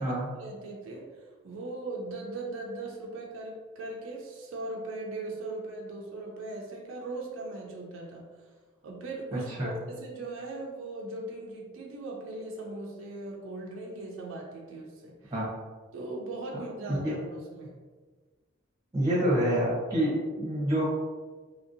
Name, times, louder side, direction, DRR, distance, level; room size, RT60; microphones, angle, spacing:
voice 1, 0.0-8.3 8.8-15.3 15.9-17.8, right 2 dB, 70° right, -1 dB, 0.4 m, -39 dB
voice 2, 9.3-9.7 15.3-15.5 17.0-17.1 18.9-20.8, right 1 dB, 20° right, -6 dB, 0.7 m, -27 dB
2.8 x 2.6 x 2.6 m, 1.4 s
head